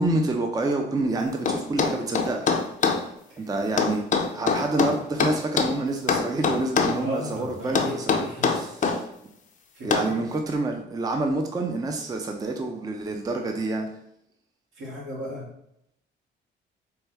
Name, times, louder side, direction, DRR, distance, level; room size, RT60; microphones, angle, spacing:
voice 1, 0.0-2.5 3.4-9.1 9.8-13.9, right 2 dB, 20° right, 3 dB, 0.4 m, -28 dB
sound 1, 1.5-3.0 3.8-5.8 6.1-7.0 7.7-9.0 9.9-10.1, left 5 dB, 40° left, 0.5 m, -23 dB
voice 2, 6.9-8.5 9.7-10.2 14.8-15.5, equal, 75° right, -2 dB, 1.4 m, -35 dB
4.4 x 2.2 x 3.4 m, 0.78 s
cardioid pair, 90°, 20 cm